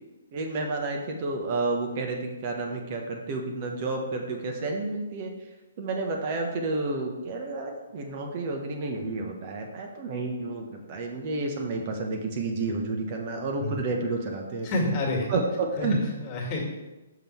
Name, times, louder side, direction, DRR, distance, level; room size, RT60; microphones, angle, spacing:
voice 1, 0.3-5.3 5.8-14.7 15.3-15.9, right 3 dB, 40° right, 2 dB, 1.1 m, -30 dB
voice 2, 14.6-15.3 15.8-16.6, left 1 dB, 30° left, -1 dB, 2.0 m, -28 dB
6.0 x 5.3 x 4.5 m, 1.1 s
hypercardioid pair, 135°, 0 cm